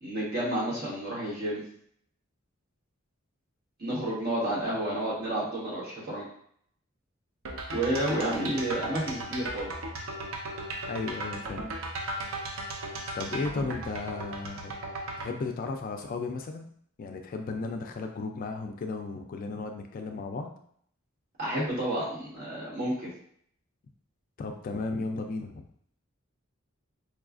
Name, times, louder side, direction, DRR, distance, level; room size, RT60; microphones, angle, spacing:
voice 1, 0.0-1.6 3.8-6.3 7.7-9.7 21.4-23.1, right 1 dB, 45° right, -6 dB, 1.4 m, -30 dB
sound 1, 7.4-15.3, right 1 dB, 70° right, 0.6 m, -36 dB
voice 2, 10.9-11.7 13.2-14.7 15.2-16.7 17.0-20.5 24.4-25.7, left 3 dB, 40° left, 4 dB, 0.3 m, -34 dB
4.7 x 2.3 x 2.4 m, 0.64 s
head